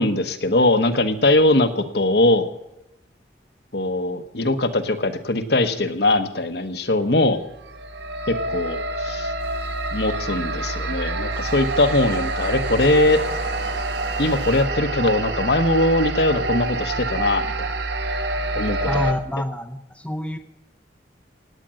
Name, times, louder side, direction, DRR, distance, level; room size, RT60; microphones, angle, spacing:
voice 1, 0.0-2.5 3.7-7.4 8.3-9.3 9.9-13.2 14.2-17.7 18.5-19.1, left 2 dB, 60° left, 8 dB, 1.2 m, -21 dB
sound 1, 7.6-19.1, right 2 dB, 65° right, 1.3 m, -27 dB
sound 2, 9.4-14.6, right 2 dB, 80° right, 7.7 m, -42 dB
voice 2, 18.8-20.4, left 1 dB, 5° left, 6 dB, 0.7 m, -27 dB
17.5 x 9.1 x 7.7 m, 0.87 s
head